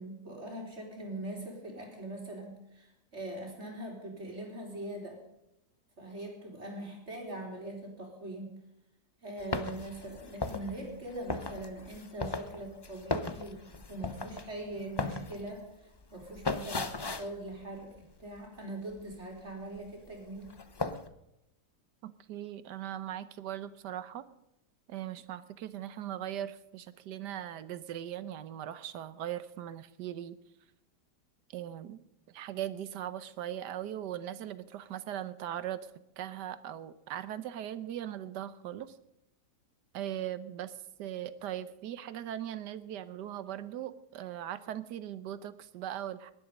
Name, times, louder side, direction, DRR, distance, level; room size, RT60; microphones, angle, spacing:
voice 1, 0.0-5.2 6.0-8.5 9.2-15.7 16.1-20.5, right 1 dB, 40° right, 0 dB, 3.6 m, -42 dB
sound 1, 9.4-18.6 18.9-19.9 20.2-21.1, left 3 dB, 35° left, 0.4 m, -37 dB
voice 2, 22.0-24.3 24.9-30.4 31.5-32.0 32.3-35.9 36.2-39.0 39.9-40.7 41.0-46.3, right 11 dB, 85° right, 14 dB, 1.4 m, -39 dB
18.0 x 11.5 x 5.3 m, 0.84 s
omnidirectional pair, 1.8 m